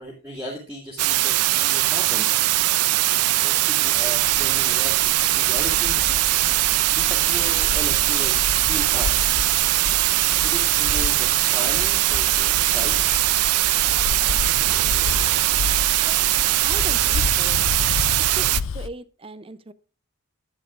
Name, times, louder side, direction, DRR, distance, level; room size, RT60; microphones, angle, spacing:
voice 1, 0.0-2.4 3.4-5.1 5.4-6.0 7.0-8.4 8.7-9.1 10.4-13.3, equal, 5° right, -7 dB, 2.2 m, -36 dB
sound 1, 1.0-18.6, right 16 dB, 90° right, 0.4 m, -21 dB
Bus, 3.7-18.9, left 6 dB, 60° left, 0.4 m, -32 dB
voice 2, 16.0-16.4 16.6-17.7 18.4-19.7, right 2 dB, 25° right, 15 dB, 0.5 m, -38 dB
12.0 x 8.9 x 2.4 m, 0.35 s
head